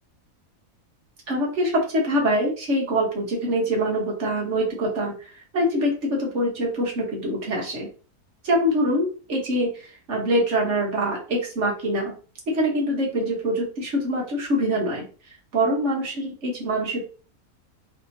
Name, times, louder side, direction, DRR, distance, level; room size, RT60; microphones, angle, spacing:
voice 1, 1.3-7.9 8.4-12.1 12.5-15.0 15.5-17.0, equal, 55° right, -1 dB, 1.3 m, -24 dB
3.3 x 2.9 x 2.7 m, 0.37 s
omnidirectional pair, 1.6 m